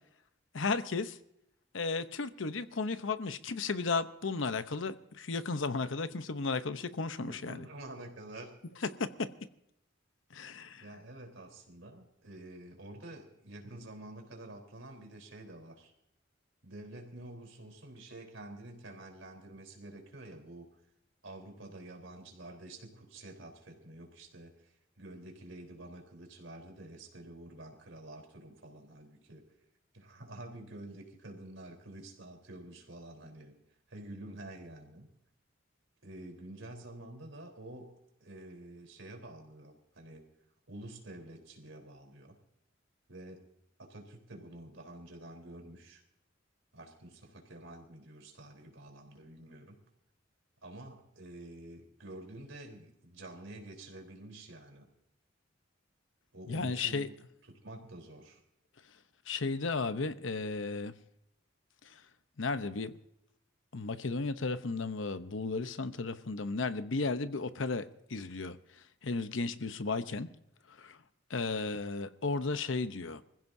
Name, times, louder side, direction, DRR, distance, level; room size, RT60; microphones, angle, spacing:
voice 1, 0.5-1.2 1.7-7.7 9.0-9.3 10.3-10.8 56.5-57.1 59.3-60.9 62.4-63.0 63.7-68.6 69.0-70.3 70.7-71.0 71.3-73.2, left 4 dB, 75° left, 0.8 m, -34 dB
voice 2, 7.2-8.5 10.8-15.9 16.6-20.6 21.2-29.4 29.9-33.6 33.9-35.1 36.0-37.9 38.2-40.2 40.7-42.4 43.1-43.4 43.8-46.0 46.7-49.8 50.6-54.9 56.3-57.1 57.4-58.4, right 1 dB, 85° right, 3.8 m, -48 dB
26.0 x 15.5 x 2.7 m
head